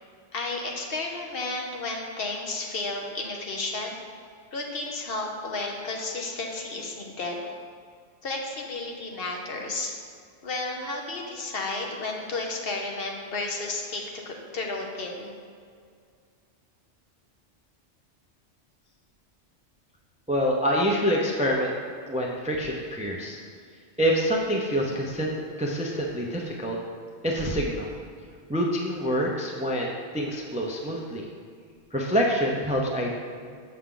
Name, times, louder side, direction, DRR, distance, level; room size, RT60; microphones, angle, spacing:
voice 1, 0.3-4.0 4.5-7.5 8.2-9.9 10.4-15.4, left 2 dB, 55° left, 1 dB, 1.1 m, -32 dB
voice 2, 20.3-21.7 22.0-23.4 24.0-25.3 25.6-26.8 27.2-27.9 28.5-31.2 31.9-33.1, equal, 10° right, -1 dB, 0.4 m, -26 dB
7.0 x 6.4 x 3.8 m, 2.1 s
omnidirectional pair, 1.2 m